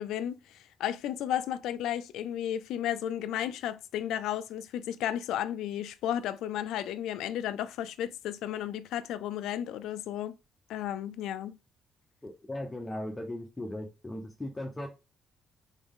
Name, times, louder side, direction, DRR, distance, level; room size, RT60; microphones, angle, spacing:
voice 1, 0.0-10.4 10.7-11.6, left 11 dB, 85° left, 0.4 m, -33 dB
voice 2, 12.2-14.9, left 1 dB, 20° left, 0.9 m, -38 dB
4.1 x 3.5 x 3.6 m
cardioid pair, 90°, 0 cm